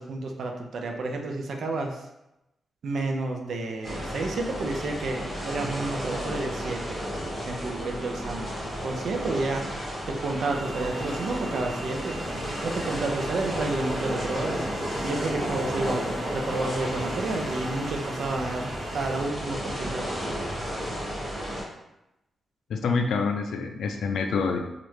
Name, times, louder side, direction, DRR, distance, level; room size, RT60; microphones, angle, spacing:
voice 1, 0.0-2.1 2.8-7.0 7.4-8.5 8.8-9.6 10.1-12.2 12.6-14.6 15.0-18.7 18.9-20.1, right 2 dB, 60° right, 2 dB, 0.4 m, -30 dB
sound 1, 3.8-21.6, equal, 15° right, 1.5 m, -33 dB
sound 2, 10.5-19.3, right 2 dB, 45° right, 0.9 m, -39 dB
voice 2, 22.7-24.6, left 4 dB, 80° left, 5 dB, 0.3 m, -26 dB
3.1 x 2.4 x 3.1 m, 0.91 s
wide cardioid pair, 175°, 0 cm